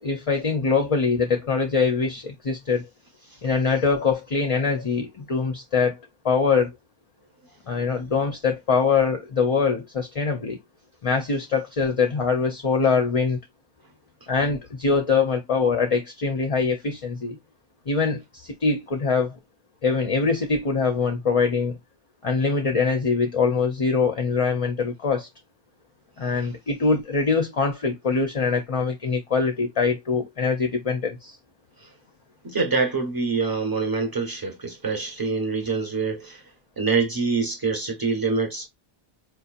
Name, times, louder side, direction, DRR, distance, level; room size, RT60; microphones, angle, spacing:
voice 1, 0.0-2.9 3.4-6.0 6.2-6.7 7.7-10.6 11.0-13.4 14.3-17.4 17.9-19.4 19.8-21.8 22.2-25.3 26.2-31.4, left 5 dB, 40° left, 0.6 m, -23 dB
voice 2, 32.4-36.4 36.8-38.7, right 4 dB, 20° right, 1.1 m, -25 dB
4.6 x 2.8 x 2.4 m
omnidirectional pair, 1.2 m